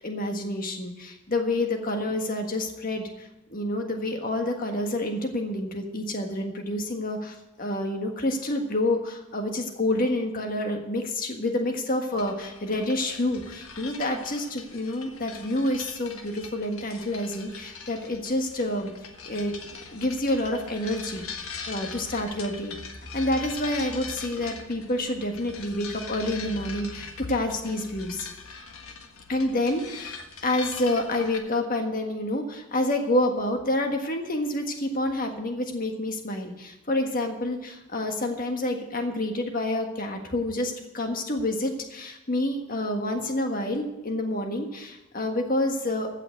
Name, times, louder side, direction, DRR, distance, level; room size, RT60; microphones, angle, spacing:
voice 1, 0.0-18.9 19.2-19.5 19.9-22.8 23.1-28.3 29.3-46.1, left 1 dB, 40° left, 4 dB, 1.6 m, -28 dB
sound 1, 12.2-31.4, left 5 dB, 85° left, 1.4 m, -41 dB
15.5 x 5.9 x 7.8 m, 0.97 s
head